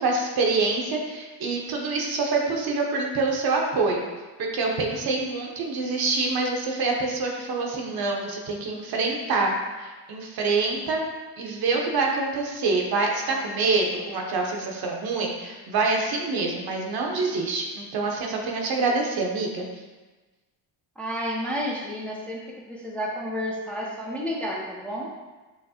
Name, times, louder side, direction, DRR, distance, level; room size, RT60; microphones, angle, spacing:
voice 1, 0.0-4.1 4.4-9.5 9.8-11.0 11.4-19.7, right 3 dB, 60° right, 0 dB, 0.8 m, -26 dB
voice 2, 21.0-25.1, equal, 5° left, -3 dB, 0.5 m, -31 dB
5.7 x 2.0 x 2.8 m, 1.2 s
cardioid pair, 105°, 41 cm